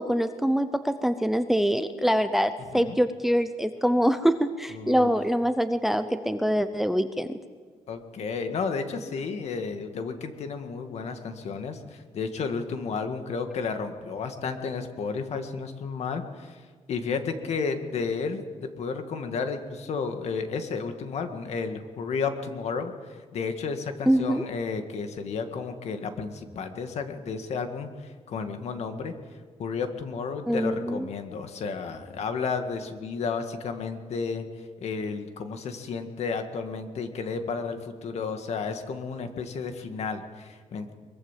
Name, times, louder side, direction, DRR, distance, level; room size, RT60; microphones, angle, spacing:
voice 1, 0.0-7.4 24.1-24.4 30.5-31.1, equal, ahead, 10 dB, 0.7 m, -24 dB
voice 2, 4.7-5.1 7.9-16.6 16.9-29.1 29.6-34.5 34.8-40.9, left 5 dB, 55° left, 7 dB, 2.0 m, -32 dB
23.0 x 22.0 x 7.5 m, 1.6 s
wide cardioid pair, 180°, 13 cm